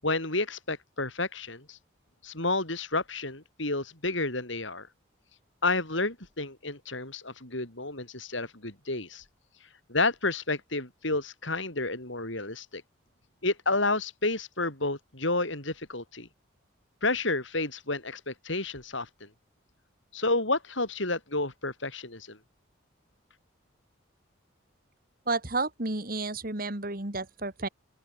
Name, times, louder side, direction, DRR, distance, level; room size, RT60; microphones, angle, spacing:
voice 1, 0.0-1.8 2.2-4.9 5.6-9.2 9.9-12.8 13.4-16.3 17.0-19.3 20.1-22.4, left 2 dB, 70° left, 7.3 m, -30 dB
voice 2, 25.3-27.7, right 3 dB, 45° right, 2.3 m, -31 dB
open air
head